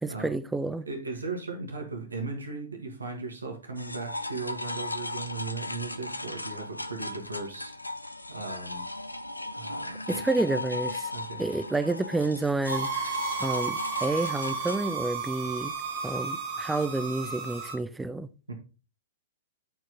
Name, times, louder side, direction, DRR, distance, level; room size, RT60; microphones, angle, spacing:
voice 1, 0.0-0.9 10.1-11.1 11.4-15.7 16.0-18.3, right 2 dB, 5° right, 0.5 m, -29 dB
voice 2, 0.9-7.7 8.3-8.8 9.5-10.2 11.1-11.4 18.5-18.6, right 3 dB, 80° right, 1.7 m, -37 dB
sound 1, 3.8-14.8, left 2 dB, 90° left, 0.6 m, -36 dB
sound 2, 12.7-17.8, right 5 dB, 50° right, 2.0 m, -33 dB
9.0 x 4.6 x 4.0 m
figure-of-eight pair, 110°, 0 cm